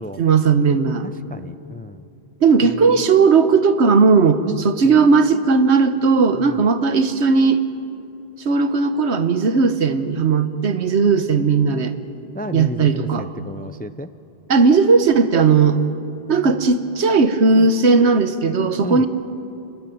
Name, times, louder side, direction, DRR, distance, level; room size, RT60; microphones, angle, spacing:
voice 1, 0.2-1.1 2.4-7.6 8.4-11.9 12.5-13.2 14.5-15.8 16.3-19.1, right 4 dB, 90° right, 10 dB, 1.4 m, -16 dB
voice 2, 1.0-2.1 2.6-3.0 4.8-5.0 6.4-6.6 12.3-14.1 17.6-17.7 18.8-19.0, left 1 dB, 15° left, 12 dB, 0.3 m, -33 dB
29.5 x 13.0 x 9.3 m, 2.7 s
omnidirectional pair, 1.1 m